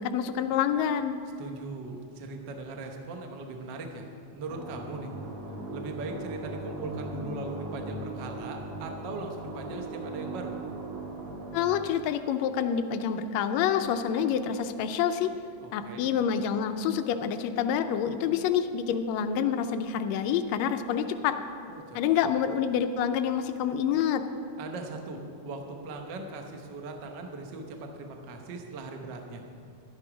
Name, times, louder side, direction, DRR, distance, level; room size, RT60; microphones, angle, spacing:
voice 1, 0.0-1.2 11.5-15.3 15.7-21.4 21.9-24.2, left 8 dB, 85° left, 8 dB, 1.5 m, -27 dB
voice 2, 1.4-4.0 4.3-5.1 5.7-10.5 15.6-16.1 21.7-22.0 24.6-29.4, right 3 dB, 80° right, 3 dB, 1.0 m, -39 dB
sound 1, 4.5-11.9, right 2 dB, 60° right, 1.7 m, -38 dB
12.0 x 10.5 x 4.9 m, 2.5 s
omnidirectional pair, 3.7 m